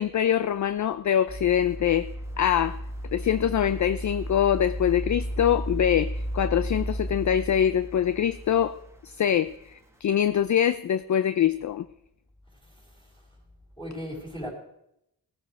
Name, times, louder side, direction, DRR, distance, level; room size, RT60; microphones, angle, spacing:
voice 1, 0.0-2.1 2.4-2.8 3.1-8.8 9.0-11.9, left 9 dB, 50° left, 14 dB, 0.5 m, -24 dB
sound 1, 1.3-9.5 9.9-10.0, equal, 5° right, 1.6 m, -34 dB
voice 2, 12.6-13.1 13.8-14.5, equal, 15° left, -1 dB, 4.7 m, -38 dB
17.0 x 9.1 x 4.6 m, 0.80 s
wide cardioid pair, 105°, 38 cm